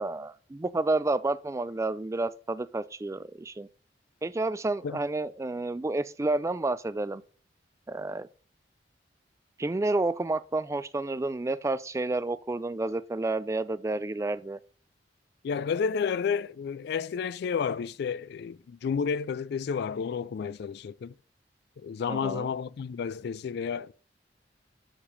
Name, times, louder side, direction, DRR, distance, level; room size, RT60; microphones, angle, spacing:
voice 1, 0.0-3.7 4.2-7.2 7.9-8.3 9.6-14.6 22.1-22.5, right 2 dB, 15° right, 0.3 m, -30 dB
voice 2, 15.4-21.1 21.8-23.9, left 6 dB, 60° left, 0.3 m, -31 dB
7.3 x 5.0 x 5.1 m
head